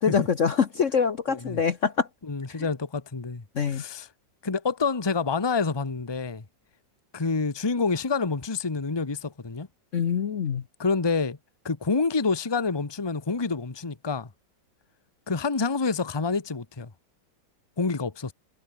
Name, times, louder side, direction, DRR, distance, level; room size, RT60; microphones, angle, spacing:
voice 1, 0.0-2.1 3.5-3.8 9.9-10.6, left 6 dB, 50° left, 1.2 m, -24 dB
voice 2, 1.3-1.6 2.3-4.1 4.4-6.4 7.1-9.7 10.8-11.4 11.6-14.3 15.3-16.9 17.8-18.3, left 4 dB, 15° left, 1.1 m, -27 dB
omnidirectional pair, 1.9 m